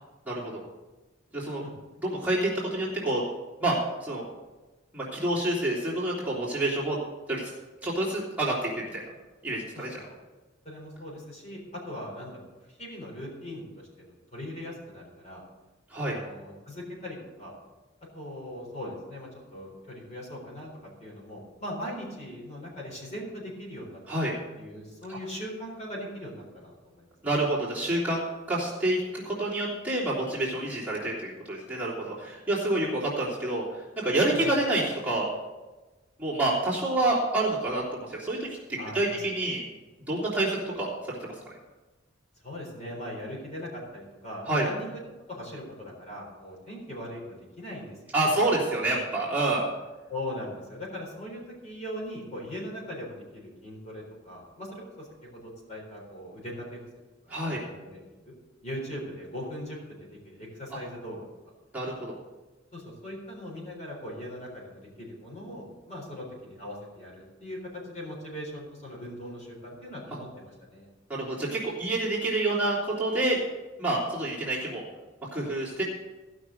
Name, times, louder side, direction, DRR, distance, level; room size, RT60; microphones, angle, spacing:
voice 1, 0.2-0.6 1.3-1.6 2.0-3.2 3.6-3.7 4.0-4.2 4.9-7.0 7.3-7.5 7.8-9.0 9.4-10.0 15.9-16.2 24.1-24.3 25.1-25.2 27.2-35.3 36.2-38.6 38.9-39.6 40.1-41.3 44.5-44.7 48.1-49.6 57.3-57.6 61.7-62.2 71.1-73.4 73.8-74.8 75.3-75.8, right 2 dB, 10° right, -8 dB, 3.1 m, -28 dB
voice 2, 10.6-13.7 14.0-15.4 16.0-17.5 18.1-20.7 21.0-24.0 24.6-27.1 34.3-34.5 38.8-39.3 42.4-45.0 45.3-48.5 50.1-56.8 57.4-58.3 58.6-61.2 62.7-67.6 67.8-70.9, left 1 dB, 35° left, -2 dB, 3.9 m, -40 dB
15.0 x 6.0 x 6.4 m, 1.2 s
head